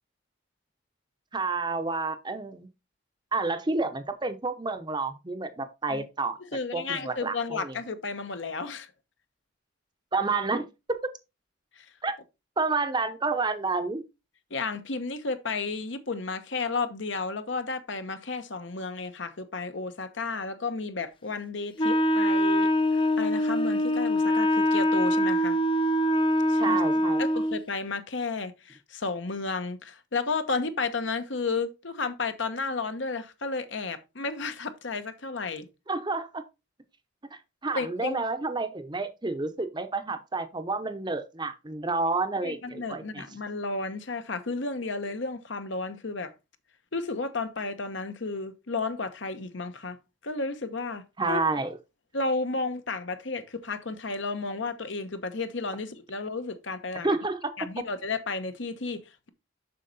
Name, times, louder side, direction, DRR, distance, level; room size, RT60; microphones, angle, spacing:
voice 1, 1.3-2.7 3.3-6.4 6.7-7.8 10.1-11.1 12.0-12.2 12.6-14.0 26.6-27.2 35.9-36.4 37.3-43.2 51.2-51.8 57.0-57.5, right 3 dB, 20° right, 0.7 m, -29 dB
voice 2, 6.5-8.9 11.8-11.9 14.5-25.6 26.5-26.8 27.2-35.7 37.7-38.2 42.4-46.3 46.9-50.0 50.2-51.4 52.1-57.2 57.6-59.3, left 3 dB, 70° left, 1.1 m, -32 dB
Wind instrument woodwind instrument, 21.8-27.6, equal, 25° left, 0.5 m, -24 dB
7.5 x 6.3 x 4.0 m
head